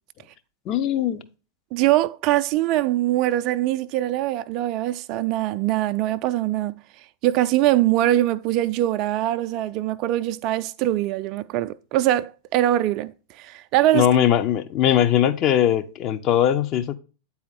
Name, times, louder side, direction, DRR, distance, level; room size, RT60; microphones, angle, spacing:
voice 1, 0.7-1.2 13.9-17.0, left 10 dB, 35° left, 0.6 m, -20 dB
voice 2, 1.7-6.7 7.2-14.1, right 14 dB, 40° right, 0.3 m, -22 dB
8.6 x 4.2 x 4.0 m
figure-of-eight pair, 90°, 0 cm